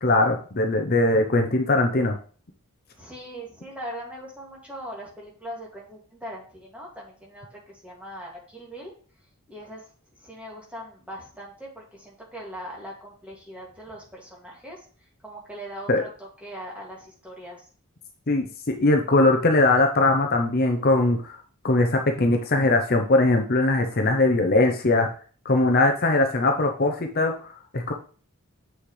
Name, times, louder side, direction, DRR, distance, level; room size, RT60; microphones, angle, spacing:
voice 1, 0.0-2.2 15.9-16.0 18.3-21.4 21.6-25.1 25.4-27.9, left 2 dB, 45° left, 4 dB, 0.8 m, -21 dB
voice 2, 3.0-8.9 9.5-9.9 10.2-14.8 15.2-17.7, equal, 5° right, -4 dB, 2.3 m, -40 dB
7.8 x 6.3 x 3.3 m, 0.41 s
head